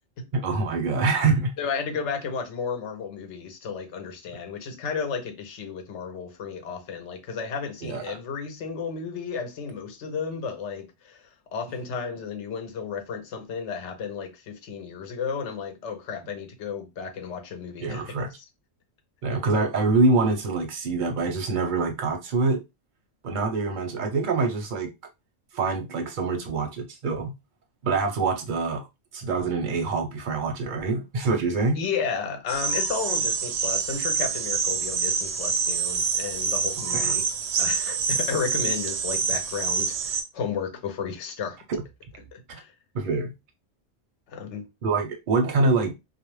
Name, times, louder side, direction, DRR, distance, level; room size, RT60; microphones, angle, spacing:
voice 1, 0.3-1.5 7.8-8.2 17.8-18.4 19.2-22.6 23.2-24.9 25.5-27.3 27.8-28.9 29.1-31.8 36.9-37.1 41.7-41.8 42.9-43.3 44.8-46.0, right 3 dB, 50° right, 0.7 m, -25 dB
voice 2, 1.6-11.2 11.5-18.4 19.3-19.4 31.7-37.2 37.6-41.6 42.3-42.7 44.3-44.7, left 6 dB, 70° left, 0.9 m, -33 dB
sound 1, 32.5-40.2, right 6 dB, 80° right, 0.9 m, -26 dB
2.4 x 2.0 x 3.0 m
omnidirectional pair, 1.3 m